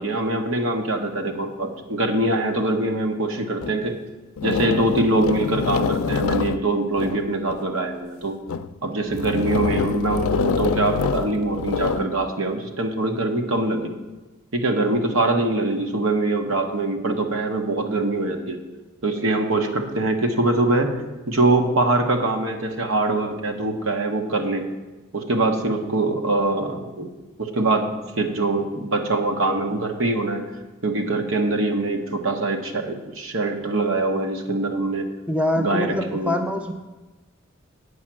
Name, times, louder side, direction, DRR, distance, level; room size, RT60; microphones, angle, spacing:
voice 1, 0.0-3.9 4.4-8.4 8.8-13.9 14.5-18.6 19.0-20.9 21.3-24.7 25.1-27.1 27.4-30.4 30.8-35.1 35.6-36.3, right 2 dB, 80° right, 4 dB, 1.2 m, -23 dB
sound 1, 3.6-3.8 4.4-7.6 8.2-8.7 9.1-12.1, left 6 dB, 85° left, 0.4 m, -25 dB
voice 2, 35.3-36.7, left 1 dB, 5° right, 5 dB, 0.6 m, -24 dB
8.4 x 5.7 x 7.4 m, 1.2 s
head